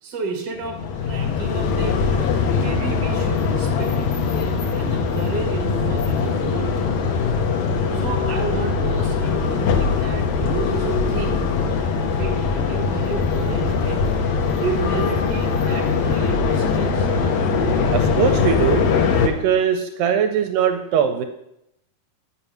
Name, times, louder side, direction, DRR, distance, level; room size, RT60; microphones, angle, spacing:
voice 1, 0.0-2.1 2.5-4.1 4.7-6.7 7.9-11.5 12.1-14.1 14.6-17.1, right 4 dB, 45° right, 1 dB, 1.7 m, -31 dB
sound 1, 0.6-19.3, left 5 dB, 70° left, 1.9 m, -21 dB
voice 2, 17.9-18.9 19.2-21.3, right 8 dB, 80° right, 7 dB, 2.2 m, -21 dB
9.0 x 5.7 x 5.5 m, 0.82 s
omnidirectional pair, 4.0 m